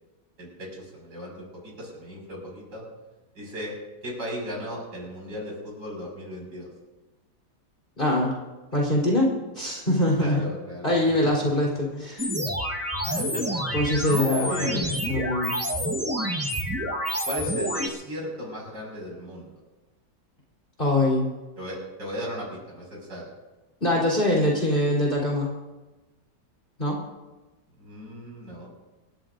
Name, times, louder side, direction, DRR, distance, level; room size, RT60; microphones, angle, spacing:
voice 1, 0.4-2.8 3.3-3.7 4.0-6.7 10.2-10.9 13.0-13.8 14.0-15.0 17.2-19.5 21.6-23.3 27.8-28.7, equal, 75° right, -2 dB, 6.6 m, -36 dB
voice 2, 8.0-8.3 8.7-10.5 10.8-12.3 13.7-14.7 15.1-15.5 20.8-21.3 23.8-25.5 26.8-27.0, left 1 dB, 30° left, -3 dB, 4.1 m, -23 dB
sound 1, 12.2-17.9, equal, 10° right, 1.2 m, -28 dB
28.0 x 13.5 x 2.7 m, 1.1 s
omnidirectional pair, 1.8 m